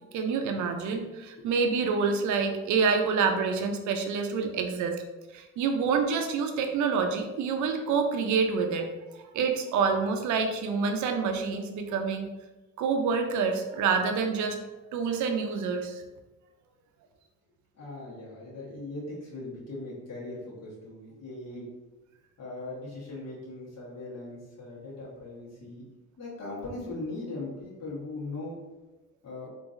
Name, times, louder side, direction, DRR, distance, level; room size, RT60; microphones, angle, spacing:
voice 1, 0.1-5.0 5.3-8.9 9.3-12.3 12.8-14.6 14.9-16.0, right 5 dB, 75° right, 5 dB, 0.5 m, -27 dB
voice 2, 17.7-21.7 22.4-25.8 26.2-28.6 29.2-29.5, left 2 dB, 60° left, -5 dB, 1.3 m, -39 dB
3.7 x 2.6 x 2.5 m, 1.1 s
cardioid pair, 90°, 30 cm